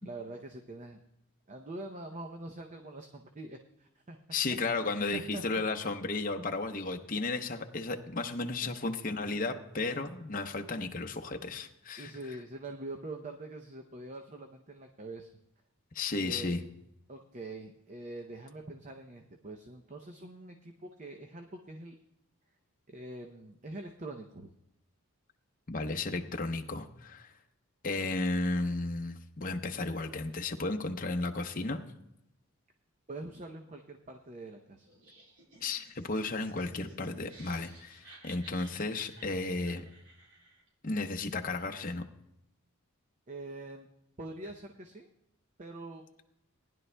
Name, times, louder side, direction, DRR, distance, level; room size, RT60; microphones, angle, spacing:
voice 1, 0.0-1.0 1.5-4.2 5.1-5.4 8.6-8.7 12.0-15.3 16.2-16.6 17.1-22.0 22.9-24.5 33.1-34.9 43.3-43.9 44.2-45.1 45.6-46.1, right 2 dB, 35° right, 4 dB, 0.6 m, -44 dB
voice 2, 4.3-12.1 15.9-16.6 25.7-27.3 27.8-31.8 35.6-39.8 40.8-42.0, left 3 dB, 40° left, 4 dB, 0.8 m, -34 dB
Laughter, 34.8-40.7, right 2 dB, 70° right, 4.5 m, -57 dB
18.5 x 11.0 x 2.2 m, 0.82 s
head